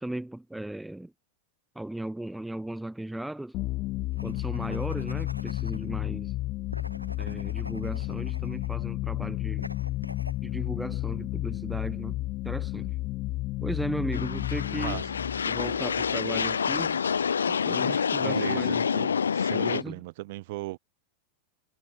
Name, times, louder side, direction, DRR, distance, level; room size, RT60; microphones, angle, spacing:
voice 1, 0.0-1.1 1.7-3.6 4.2-6.3 7.2-9.7 10.4-13.0 13.6-15.0 15.5-17.0 17.5-19.2 19.5-20.0, right 1 dB, 5° right, 1.0 m, -36 dB
sound 1, 3.5-16.8, left 18 dB, 40° left, 1.4 m, -32 dB
sound 2, 4.1-5.9 6.7-8.9 9.6-10.4, equal, 90° left, 5.4 m, -45 dB
sound 3, 14.1-19.8, left 6 dB, 70° left, 0.6 m, -27 dB
voice 2, 18.2-18.8 19.3-20.8, right 20 dB, 50° right, 2.4 m, -37 dB
figure-of-eight pair, 90°, 0 cm